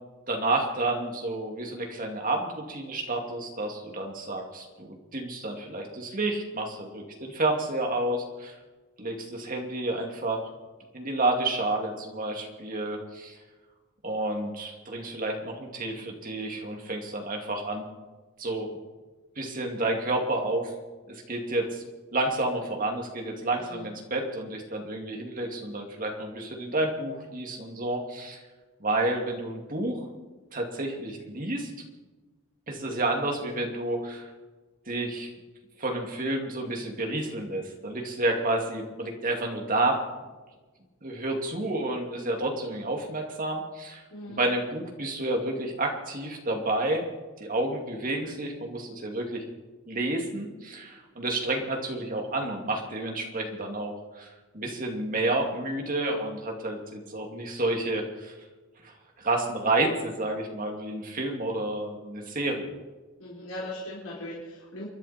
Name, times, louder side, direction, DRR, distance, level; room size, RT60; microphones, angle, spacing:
voice 1, 0.3-8.6 9.0-10.4 10.9-13.4 14.0-17.8 18.4-18.7 19.4-20.7 21.1-21.8 22.1-28.4 28.8-30.1 30.5-31.7 32.7-34.3 34.9-35.3 35.8-40.0 41.0-44.0 44.3-47.0 47.4-49.4 49.9-54.3 54.5-58.3 58.8-62.8, right 2 dB, 40° right, 2 dB, 2.6 m, -30 dB
voice 2, 44.1-44.4 63.2-64.9, left 1 dB, 80° left, -6 dB, 4.3 m, -39 dB
29.5 x 11.0 x 4.4 m, 1.3 s
head